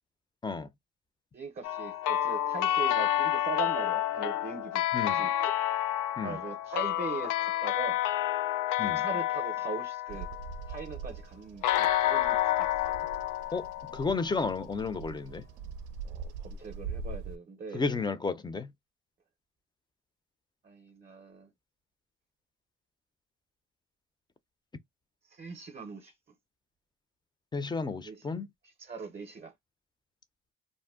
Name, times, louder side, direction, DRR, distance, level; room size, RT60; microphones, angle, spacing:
voice 1, 1.3-5.5 5.9-8.0 8.8-10.3 10.7-12.9 16.0-17.9 20.6-21.5 25.3-26.1 28.0-28.3 28.6-29.5, right 4 dB, 30° right, 0.6 m, -41 dB
sound 1, 1.6-10.9 11.6-14.5, left 12 dB, 85° left, 0.4 m, -29 dB
Bird vocalization bird call bird song, 10.1-17.4, right 5 dB, 90° right, 0.5 m, -43 dB
voice 2, 13.5-15.5 17.7-18.7 27.5-28.5, left 4 dB, 15° left, 0.4 m, -32 dB
2.6 x 2.0 x 3.5 m
cardioid pair, 90°, 30 cm